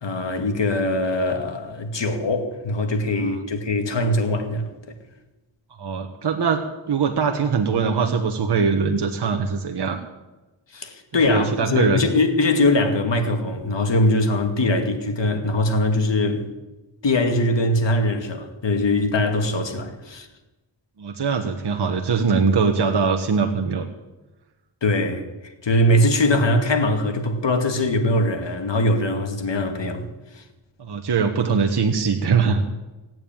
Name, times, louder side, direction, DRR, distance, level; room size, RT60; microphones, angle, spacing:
voice 1, 0.0-4.7 10.7-16.5 17.0-20.3 24.8-25.3 25.6-30.0 30.3-30.4, left 1 dB, 60° left, 2.4 m, -21 dB
voice 2, 3.1-3.4 5.8-10.0 11.2-12.1 21.0-23.9 30.8-32.7, right 5 dB, 55° right, 1.4 m, -22 dB
17.5 x 9.1 x 9.0 m
cardioid pair, 65°, 50 cm